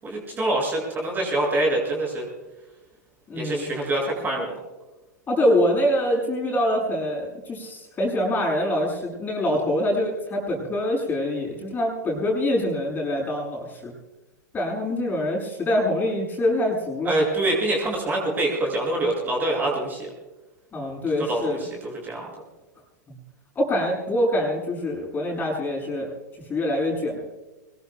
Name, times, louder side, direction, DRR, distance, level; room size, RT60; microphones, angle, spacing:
voice 1, 0.0-2.3 3.3-4.5 17.0-20.1 21.2-22.3, right 1 dB, 20° right, -2 dB, 7.1 m, -25 dB
voice 2, 3.3-3.7 5.3-13.9 14.5-17.1 20.7-21.6 23.1-23.2 23.6-26.1 26.5-27.3, left 1 dB, 20° left, -2 dB, 7.6 m, -25 dB
24.5 x 22.5 x 2.4 m, 1.1 s
figure-of-eight pair, 100°, 10 cm